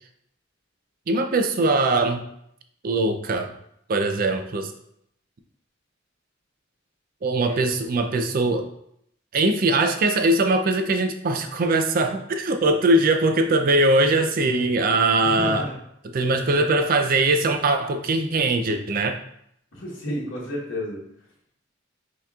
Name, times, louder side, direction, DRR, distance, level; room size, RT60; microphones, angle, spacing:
voice 1, 1.1-2.2 2.8-3.5 3.9-4.7 7.2-8.7 9.3-15.7 16.1-19.2, right 2 dB, 45° right, 6 dB, 0.4 m, -21 dB
voice 2, 15.2-15.8 19.7-21.0, left 1 dB, 90° left, -4 dB, 1.1 m, -31 dB
5.5 x 2.9 x 2.3 m, 0.74 s
head